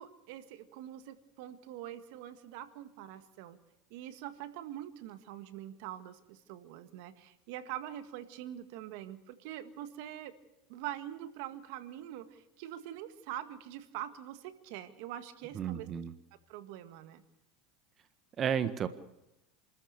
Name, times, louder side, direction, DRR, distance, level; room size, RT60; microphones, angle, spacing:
voice 1, 0.0-3.6 3.9-10.3 10.7-15.9 16.5-17.2, right 12 dB, 70° right, 12 dB, 1.8 m, -44 dB
voice 2, 15.5-16.1 18.4-18.9, right 8 dB, 35° right, 12 dB, 1.6 m, -32 dB
28.5 x 14.0 x 6.8 m, 0.90 s
supercardioid pair, 115°, 0 cm